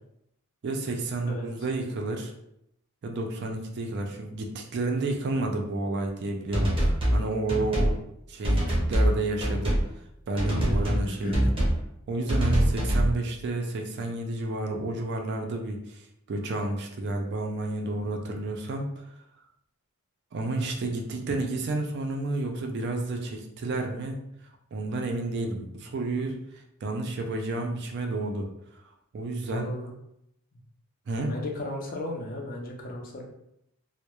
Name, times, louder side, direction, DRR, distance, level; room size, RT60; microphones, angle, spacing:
voice 1, 0.6-2.3 3.0-8.0 8.3-9.8 10.3-11.5 12.1-16.0 16.3-18.9 20.3-24.2 24.7-26.4 26.8-28.5 29.1-29.7 31.1-31.3, right 2 dB, 50° right, 3 dB, 0.3 m, -30 dB
sound 1, 6.5-7.2 7.5-7.9 8.4-9.1 9.4-9.8 10.4-11.0 11.3-11.8 12.3-13.1, equal, 25° right, 0.7 m, -24 dB
voice 2, 10.5-10.8 11.1-11.5 29.5-29.9 31.3-33.2, left 1 dB, 40° left, 0 dB, 0.5 m, -35 dB
2.2 x 2.0 x 2.9 m, 0.79 s
head